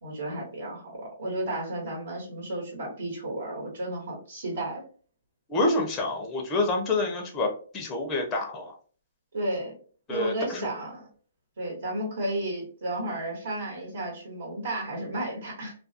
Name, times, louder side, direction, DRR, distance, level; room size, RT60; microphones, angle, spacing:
voice 1, 0.0-4.8 9.3-9.7 10.1-11.1 11.6-15.7, right 1 dB, 70° right, -2 dB, 1.2 m, -33 dB
voice 2, 5.5-7.5 7.7-8.7 10.1-10.7, left 2 dB, 15° left, 1 dB, 0.4 m, -27 dB
2.3 x 2.2 x 2.7 m, 0.42 s
hypercardioid pair, 155°, 0 cm